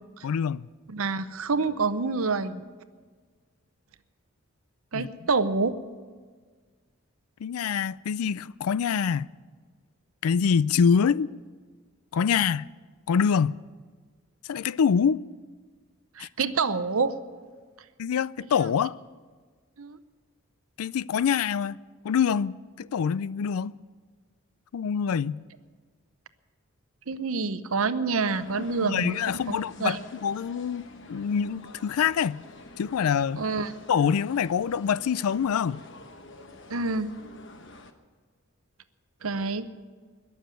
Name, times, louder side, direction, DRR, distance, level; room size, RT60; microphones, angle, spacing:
voice 1, 0.2-0.7 4.9-5.1 7.4-9.3 10.2-11.3 12.1-12.7 13.1-13.6 14.5-15.2 16.2-16.3 18.0-19.0 20.8-21.8 22.0-23.7 24.7-25.4 28.9-30.8 31.1-32.4 32.8-33.4 33.9-35.8, left 7 dB, 80° left, 0.4 m, -25 dB
voice 2, 0.9-2.6 4.9-5.8 16.2-17.1 19.8-20.0 27.1-29.2 29.5-30.0 33.4-33.7 36.7-37.1 39.2-39.7, right 4 dB, 70° right, 0.8 m, -27 dB
sound 1, 28.3-37.9, left 2 dB, 55° left, 1.1 m, -48 dB
21.5 x 7.2 x 8.9 m
head